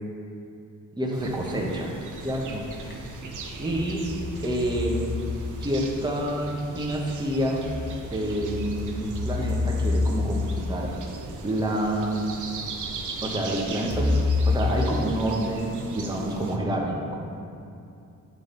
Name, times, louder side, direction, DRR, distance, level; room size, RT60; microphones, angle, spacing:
voice 1, 1.0-1.9 2.2-2.6 3.6-4.1 4.4-5.3 5.6-7.7 8.1-10.9 11.4-12.3 13.2-14.1 14.5-17.4, right 1 dB, 15° right, -1 dB, 1.0 m, -28 dB
sound 1, 1.1-16.6, right 3 dB, 70° right, 0.8 m, -39 dB
sound 2, 2.2-3.1 3.6-6.0 7.2-11.6 12.4-12.5 13.9-15.8, left 3 dB, 30° left, 1.0 m, -29 dB
9.7 x 3.9 x 3.9 m, 2.6 s
cardioid pair, 110°, 32 cm